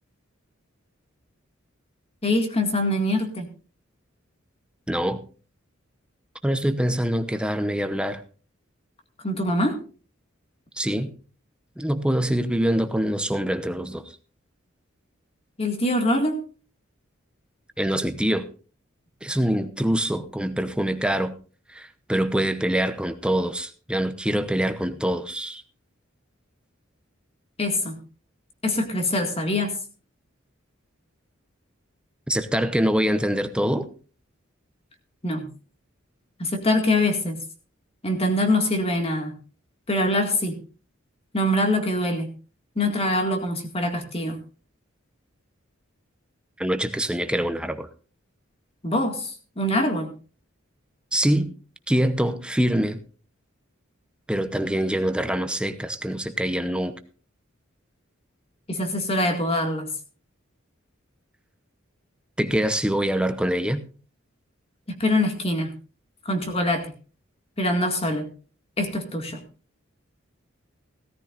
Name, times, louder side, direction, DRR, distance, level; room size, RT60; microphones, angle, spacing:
voice 1, 2.2-3.5 9.2-9.8 15.6-16.4 27.6-28.0 28.6-29.7 35.2-35.5 36.4-37.4 38.0-39.4 39.9-40.6 41.3-42.3 42.8-44.4 48.8-49.3 49.6-50.1 58.7-59.9 65.0-65.7 66.3-66.9 67.6-68.3 68.8-69.4, left 1 dB, 30° left, 4 dB, 2.1 m, -24 dB
voice 2, 4.9-5.2 6.4-8.2 10.8-11.1 11.8-14.0 17.8-18.5 19.2-21.3 21.7-25.6 32.3-33.9 46.6-47.9 51.1-51.5 51.9-53.0 54.3-56.9 62.4-63.8, right 1 dB, 5° right, 9 dB, 0.8 m, -24 dB
17.5 x 13.5 x 2.5 m, 0.37 s
head